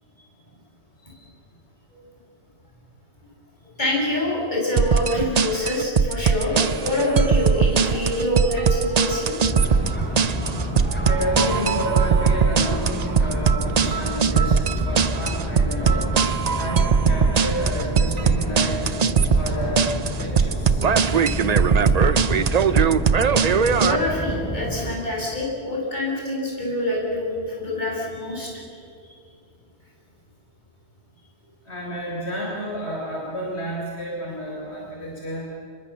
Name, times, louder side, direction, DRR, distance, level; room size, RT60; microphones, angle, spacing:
voice 1, 3.8-9.4 23.7-28.8, left 1 dB, 40° left, -3 dB, 6.8 m, -26 dB
sound 1, 4.8-24.0, right 6 dB, 45° right, 0.7 m, -20 dB
sound 2, 6.5-19.7, right 1 dB, 20° right, 5.4 m, -39 dB
sound 3, 9.4-24.9, equal, 10° left, 4.0 m, -29 dB
voice 2, 11.1-14.6 14.9-16.0 16.5-18.9 19.3-20.9 31.7-35.5, equal, 70° left, -3 dB, 4.3 m, -30 dB
26.0 x 22.0 x 7.2 m, 2.2 s
omnidirectional pair, 1.2 m